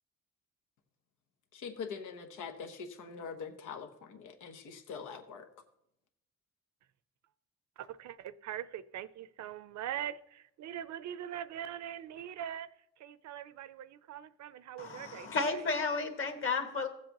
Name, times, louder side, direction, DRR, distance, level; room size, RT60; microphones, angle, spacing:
voice 1, 1.5-5.5, left 6 dB, 85° left, 6 dB, 1.1 m, -43 dB
voice 2, 7.8-12.7 13.0-15.6, right 10 dB, 65° right, 15 dB, 0.6 m, -42 dB
voice 3, 14.8-16.9, left 4 dB, 45° left, 5 dB, 1.7 m, -33 dB
16.0 x 7.6 x 3.0 m, 0.79 s
cardioid pair, 90°, 30 cm